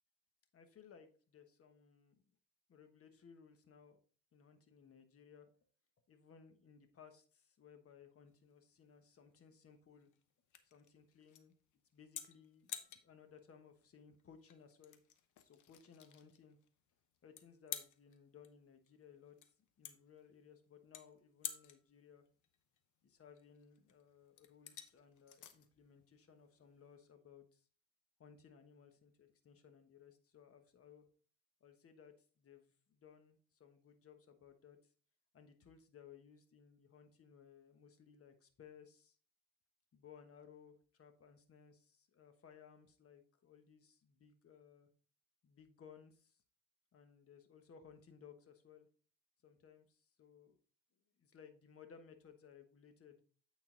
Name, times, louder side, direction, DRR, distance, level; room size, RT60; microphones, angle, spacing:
voice 1, 0.5-2.3 2.7-4.0 4.3-5.5 6.1-10.1 10.6-11.5 11.9-15.0 15.4-16.6 17.2-22.3 23.0-27.7 28.2-31.1 31.6-34.9 35.3-39.2 39.9-44.9 45.4-46.4 46.9-48.9 49.4-50.6 51.2-53.2, left 7 dB, 50° left, 7 dB, 1.2 m, -61 dB
sound 1, 8.3-27.1, left 10 dB, 80° left, 0.9 m, -53 dB
8.7 x 3.9 x 3.8 m, 0.42 s
cardioid pair, 90°, 30 cm